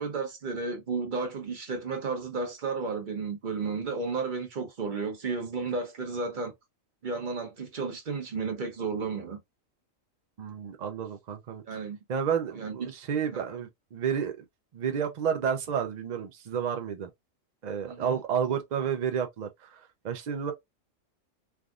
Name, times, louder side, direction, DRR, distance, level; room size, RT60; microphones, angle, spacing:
voice 1, 0.0-6.5 7.0-9.4 11.7-12.0 12.5-12.7 13.3-13.6 17.9-18.2, right 4 dB, 40° right, 0.9 m, -33 dB
voice 2, 10.4-11.8 12.1-14.4 14.7-17.1 17.6-20.5, right 7 dB, 70° right, 0.4 m, -31 dB
3.4 x 2.5 x 2.3 m
omnidirectional pair, 1.4 m